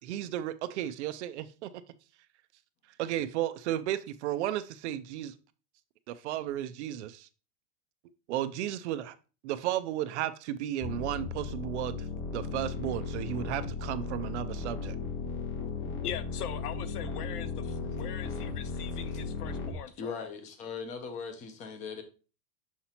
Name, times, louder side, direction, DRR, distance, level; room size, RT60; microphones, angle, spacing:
voice 1, 0.0-1.7 3.0-5.3 6.1-7.3 8.3-9.1 9.4-12.1 12.3-15.0, right 12 dB, 50° right, 0.5 m, -34 dB
sound 1, 10.8-19.7, left 4 dB, 45° left, 1.8 m, -36 dB
voice 2, 16.0-20.2, left 10 dB, 75° left, 0.8 m, -41 dB
voice 3, 20.0-22.0, left 5 dB, 15° left, 0.5 m, -39 dB
6.5 x 5.8 x 2.8 m
supercardioid pair, 165°, 47 cm